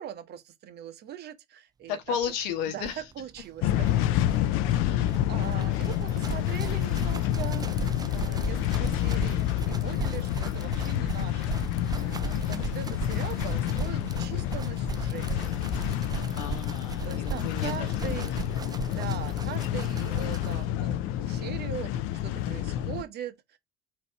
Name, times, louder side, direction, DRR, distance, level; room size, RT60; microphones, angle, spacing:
voice 1, 0.0-2.2 2.7-3.9 4.8-4.9 5.3-7.7 8.1-11.6 12.0-15.5 16.2-16.6 17.0-18.3 18.8-23.6, right 10 dB, 50° right, 1.0 m, -41 dB
voice 2, 1.9-3.0 4.8-5.2 11.9-12.5 16.0-17.9 18.3-18.4 18.7-19.0, left 8 dB, 90° left, 1.2 m, -35 dB
sound 1, 2.2-2.3 2.5-2.6 2.8-20.7, right 6 dB, 20° right, 0.4 m, -38 dB
sound 2, 3.6-23.0, left 12 dB, 75° left, 0.6 m, -29 dB
4.1 x 2.9 x 4.5 m
supercardioid pair, 100°, 21 cm